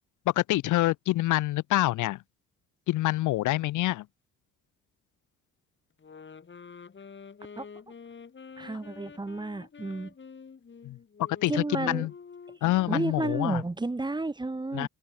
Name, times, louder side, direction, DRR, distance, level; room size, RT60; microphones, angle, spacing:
voice 1, 0.2-2.2 2.9-4.1 10.8-11.0 11.4-12.1 12.6-13.6 14.7-14.9, left 17 dB, 90° left, 1.4 m, -26 dB
sound 1, 6.0-13.6, left 5 dB, 40° left, 7.9 m, -48 dB
voice 2, 8.6-10.1 11.5-12.1 12.6-14.9, right 2 dB, 15° right, 1.2 m, -32 dB
cardioid pair, 90°, 30 cm